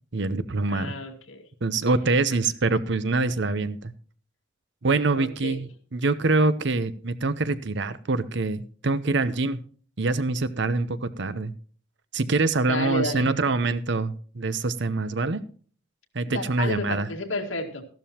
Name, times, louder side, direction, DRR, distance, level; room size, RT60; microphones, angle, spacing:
voice 1, 0.1-0.9 1.6-3.9 4.8-9.6 10.0-11.5 12.1-15.4 16.1-17.1, right 3 dB, 60° right, 14 dB, 0.8 m, -25 dB
voice 2, 0.7-1.4 2.3-2.4 5.1-5.6 12.7-13.3 16.3-17.8, left 2 dB, 90° left, 3 dB, 2.0 m, -31 dB
14.0 x 12.0 x 2.9 m, 0.44 s
head